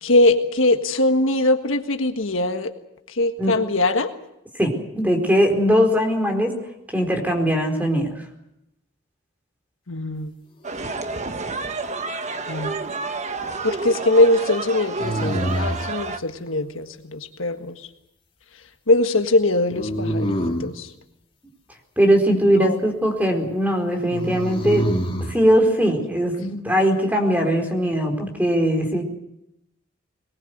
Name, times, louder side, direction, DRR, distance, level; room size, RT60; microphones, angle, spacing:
voice 1, 0.0-2.7 3.1-4.1 9.9-10.3 12.5-12.8 13.6-17.8 18.9-20.9 22.6-22.8, left 2 dB, 70° left, 7 dB, 1.6 m, -21 dB
voice 2, 4.5-6.5 6.9-8.3 22.0-24.9 25.3-29.0, equal, 10° right, 4 dB, 4.4 m, -20 dB
sound 1, 10.6-16.2, right 3 dB, 35° right, 1.4 m, -29 dB
sound 2, 12.2-12.9 15.0-15.9 19.7-20.8 24.1-25.3, equal, 25° left, 2.9 m, -26 dB
22.0 x 20.5 x 7.9 m, 0.83 s
head